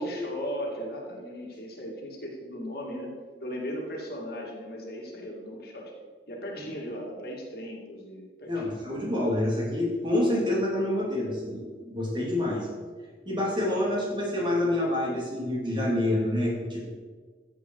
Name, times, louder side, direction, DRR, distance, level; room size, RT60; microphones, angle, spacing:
voice 1, 0.0-3.1 3.4-5.9 6.3-8.7, equal, 60° left, -1 dB, 2.5 m, -37 dB
voice 2, 8.5-12.7 13.2-16.9, left 1 dB, 25° right, -3 dB, 3.0 m, -27 dB
14.0 x 8.2 x 4.7 m, 1.5 s
head